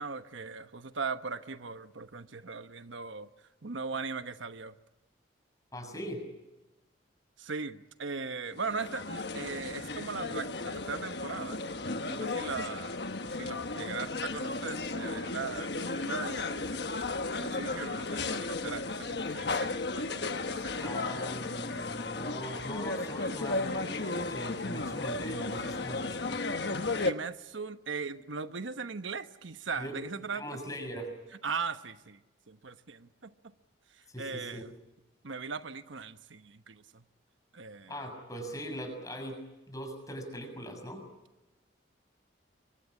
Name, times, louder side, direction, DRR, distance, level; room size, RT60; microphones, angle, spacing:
voice 1, 0.0-3.3 3.6-4.8 7.4-11.6 12.1-13.0 13.3-16.7 17.4-21.2 27.0-30.4 31.4-32.2 32.5-33.3 34.2-34.7 35.2-37.0 37.5-38.0, right 4 dB, 85° right, 10 dB, 1.1 m, -39 dB
voice 2, 5.7-6.2 20.8-26.4 29.8-31.1 34.1-34.7 37.9-41.1, equal, 20° left, 5 dB, 6.8 m, -41 dB
sound 1, 8.5-27.1, left 3 dB, 60° left, 1.3 m, -34 dB
28.0 x 23.5 x 8.6 m, 1.0 s
head